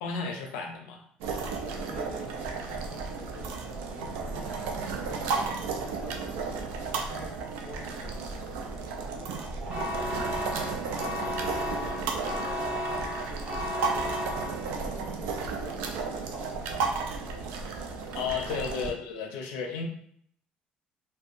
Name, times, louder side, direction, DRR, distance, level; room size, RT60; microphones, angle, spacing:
voice 1, 0.0-1.0 18.1-19.8, left 5 dB, 85° left, 3 dB, 0.5 m, -33 dB
sound 1, 1.2-18.9, right 4 dB, 85° right, 0.3 m, -33 dB
voice 2, 1.9-6.3 6.8-8.5 9.0-11.1 11.5-12.9 13.3-15.8 16.1-16.5 16.8-16.9 18.6-18.8, left 1 dB, 20° left, -5 dB, 1.2 m, -48 dB
sound 2, 9.7-15.0, left 1 dB, 35° right, 0.9 m, -34 dB
2.5 x 2.2 x 2.5 m, 0.65 s
supercardioid pair, 80°, 4 cm